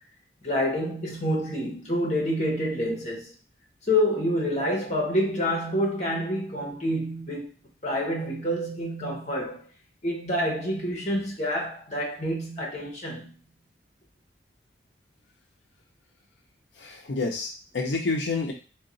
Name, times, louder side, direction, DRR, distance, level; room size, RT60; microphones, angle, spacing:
voice 1, 0.4-3.3 3.9-7.5 7.8-9.6 10.0-13.3, equal, 40° left, 1.0 m, -27 dB
voice 2, 16.8-18.5, left 3 dB, 85° left, 0.6 m, -29 dB
3.7 x 2.3 x 3.9 m
head